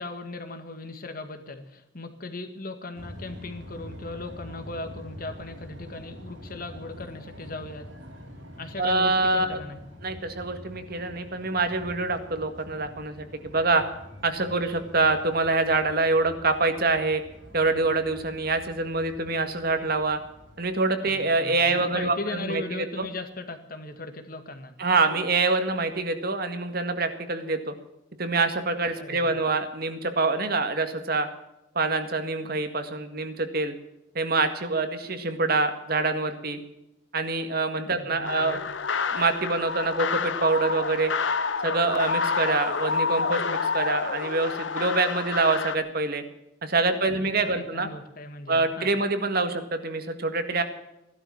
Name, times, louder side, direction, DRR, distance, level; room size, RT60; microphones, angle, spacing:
voice 1, 0.0-7.9 8.6-9.8 21.0-24.7 28.9-29.4 37.9-38.7 46.9-48.9, left 2 dB, 45° left, 7 dB, 1.9 m, -38 dB
sound 1, 2.9-20.7, equal, 85° right, 4.8 m, -45 dB
voice 2, 8.8-9.6 10.0-13.8 14.2-17.2 17.5-20.2 20.6-23.1 24.8-27.7 28.2-31.3 31.8-33.7 34.2-36.6 37.1-38.6 39.1-41.1 41.6-46.2 46.6-47.9 48.5-50.6, right 3 dB, 50° right, 8 dB, 1.8 m, -25 dB
sound 2, 38.2-45.8, left 5 dB, 75° left, 0.9 m, -28 dB
16.5 x 12.0 x 7.2 m, 0.88 s
head